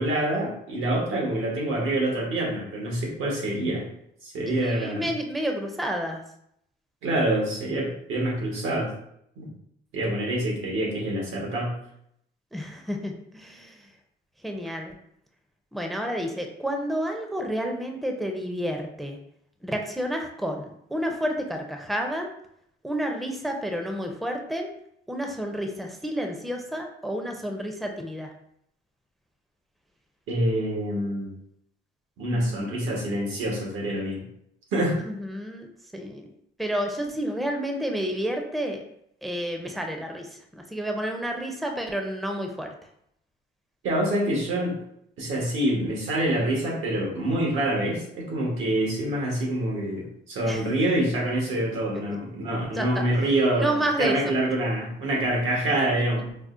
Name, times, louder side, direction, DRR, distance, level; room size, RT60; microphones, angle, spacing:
voice 1, 0.0-3.9 4.2-5.1 7.0-8.9 9.4-9.5 9.9-11.7 30.3-31.3 32.2-34.2 34.7-35.0 43.8-44.8 45.2-56.3, right 1 dB, 85° right, -2 dB, 1.2 m, -26 dB
voice 2, 4.5-6.2 12.5-13.9 14.4-14.9 15.7-19.2 19.6-22.3 22.8-24.7 25.1-28.3 32.3-32.7 35.1-35.7 35.9-36.3 36.6-38.8 39.2-42.7 50.5-50.7 52.7-53.0 53.5-54.2, equal, ahead, 3 dB, 0.5 m, -30 dB
4.8 x 2.1 x 2.5 m, 0.73 s
cardioid pair, 90°, 20 cm